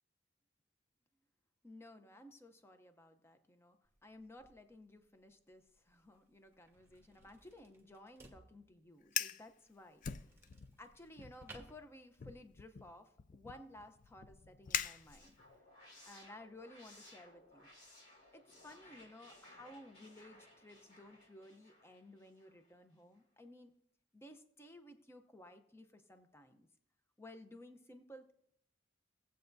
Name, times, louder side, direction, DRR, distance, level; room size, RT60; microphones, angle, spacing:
voice 1, 1.6-10.3 10.8-15.3 16.1-17.7 18.3-23.7 24.1-26.7 27.2-28.3, left 1 dB, 15° left, 8 dB, 0.7 m, -56 dB
sound 1, 3.8-12.6, right 2 dB, 15° right, 1.3 m, -63 dB
Fire, 9.0-9.5 10.0-10.8 11.2-11.5 12.2-15.6, left 9 dB, 45° left, 0.3 m, -42 dB
sound 2, 14.6-22.7, left 1 dB, 60° left, 3.2 m, -61 dB
18.0 x 7.9 x 2.7 m, 0.73 s
head